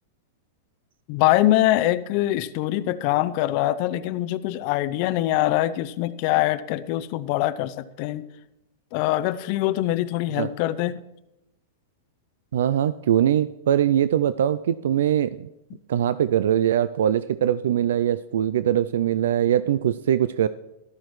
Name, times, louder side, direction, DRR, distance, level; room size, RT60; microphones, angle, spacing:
voice 1, 1.1-8.2 8.9-11.0, left 15 dB, 45° left, 14 dB, 0.5 m, -23 dB
voice 2, 12.5-15.5 15.9-20.5, right 10 dB, 80° right, 15 dB, 0.3 m, -22 dB
13.5 x 12.0 x 3.1 m, 0.91 s
supercardioid pair, 155°, 0 cm